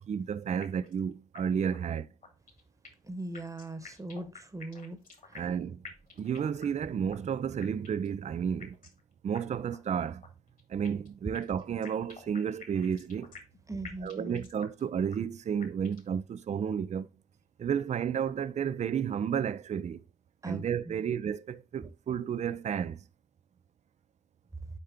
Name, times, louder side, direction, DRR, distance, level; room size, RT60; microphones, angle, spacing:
voice 1, 0.0-2.1 5.3-5.8 6.2-8.8 9.2-10.2 10.7-13.3 14.0-17.1 17.6-20.0 20.4-23.0, right 7 dB, 40° right, 0.4 m, -32 dB
sound 1, 0.6-1.0 1.3-1.4 1.7-1.8 2.2-3.1 3.3-5.6 5.8-6.8 7.1-7.2 7.6-8.1 8.6-9.0 9.3-9.4 9.7-9.8 10.2-11.1 11.3-13.6 13.8-14.8 15.1-15.2 15.6-16.1, left 4 dB, 50° left, 1.8 m, -49 dB
voice 2, 3.0-5.0 5.3-5.5 13.7-14.5 20.4-21.0, right 2 dB, 20° right, 1.1 m, -40 dB
6.7 x 4.4 x 3.6 m
hypercardioid pair, 45°, 18 cm